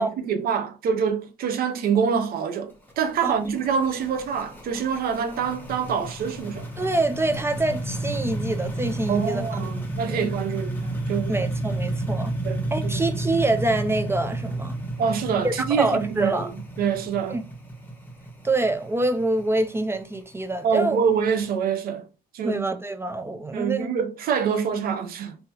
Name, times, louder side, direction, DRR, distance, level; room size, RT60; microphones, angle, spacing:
voice 1, 0.0-6.7 9.1-11.3 12.4-13.0 15.0-16.5 16.8-17.4 20.6-22.1 22.3-22.6 23.5-25.4, right 6 dB, 60° right, 0.7 m, -25 dB
sound 1, 2.7-21.5, right 1 dB, 10° left, 0.9 m, -32 dB
voice 2, 6.8-9.4 10.1-10.2 11.3-12.3 12.7-14.8 15.4-16.5 17.3-17.4 18.4-21.0 22.4-23.9, right 2 dB, 15° right, 0.3 m, -25 dB
3.7 x 2.7 x 2.9 m
cardioid pair, 110°, 17 cm